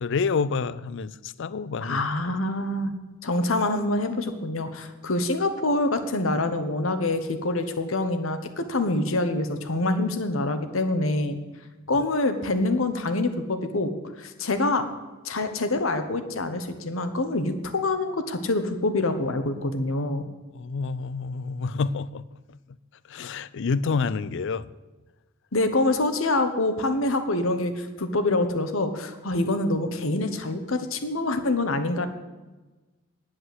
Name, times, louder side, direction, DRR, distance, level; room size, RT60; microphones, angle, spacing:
voice 1, 0.0-2.3 11.9-12.0 20.5-22.2 23.1-24.7, left 4 dB, 65° left, 0.5 m, -28 dB
voice 2, 1.8-2.9 3.2-11.4 11.9-14.9 15.2-20.3 25.5-32.1, left 2 dB, 80° left, 1.2 m, -26 dB
10.0 x 7.8 x 7.8 m
head